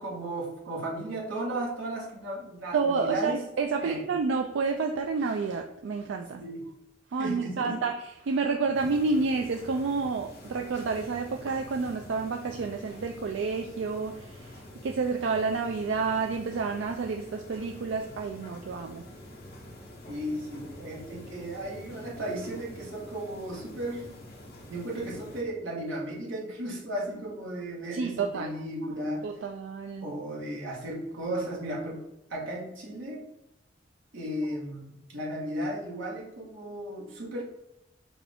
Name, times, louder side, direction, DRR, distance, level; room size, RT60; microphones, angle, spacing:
voice 1, 0.0-3.4 3.8-4.0 6.4-6.7 7.2-7.9 20.1-24.1 24.7-29.3 30.0-32.0 32.3-33.2 34.1-37.4, right 1 dB, 90° right, -3 dB, 1.4 m, -35 dB
voice 2, 2.7-6.4 7.1-7.9 8.3-14.5 14.8-19.0 27.9-28.5 29.2-30.1, right 4 dB, 70° right, 4 dB, 0.3 m, -29 dB
sound 1, 8.7-25.4, left 1 dB, 55° left, 1.2 m, -47 dB
5.9 x 2.5 x 3.5 m, 0.87 s
head